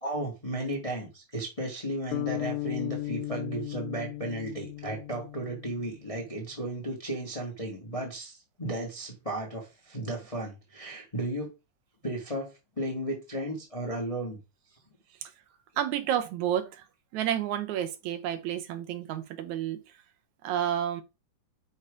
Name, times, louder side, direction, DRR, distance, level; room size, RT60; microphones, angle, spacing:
voice 1, 0.0-11.5 12.0-12.5 12.8-14.4, right 1 dB, 20° left, 0.9 m, -34 dB
sound 1, 2.1-6.4, left 18 dB, 85° left, 2.1 m, -36 dB
voice 2, 15.8-16.8 17.1-19.8 20.4-21.0, right 10 dB, 80° right, 2.1 m, -30 dB
6.7 x 3.8 x 4.9 m
omnidirectional pair, 3.4 m